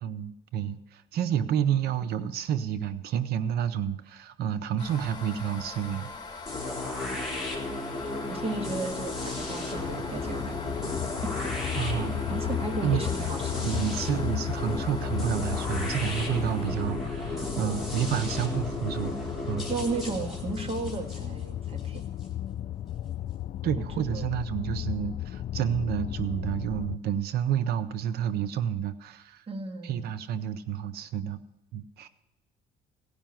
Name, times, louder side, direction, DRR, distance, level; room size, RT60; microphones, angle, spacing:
voice 1, 0.0-6.1 11.7-12.3 12.8-13.3 13.6-19.2 19.5-19.7 23.6-29.5 29.8-31.4 31.7-32.1, right 9 dB, 70° right, 14 dB, 0.6 m, -30 dB
sound 1, 4.8-16.7, left 4 dB, 25° left, 2.8 m, -42 dB
sound 2, 6.5-22.3, left 2 dB, ahead, 3.6 m, -34 dB
voice 2, 8.3-10.5 12.3-13.8 17.6-17.9 19.7-22.0 23.8-24.3 29.5-30.1, right 3 dB, 35° right, 4 dB, 1.7 m, -35 dB
sound 3, 9.7-27.0, left 12 dB, 45° left, 0.4 m, -35 dB
16.5 x 5.6 x 7.5 m, 0.99 s
cardioid pair, 110°, 17 cm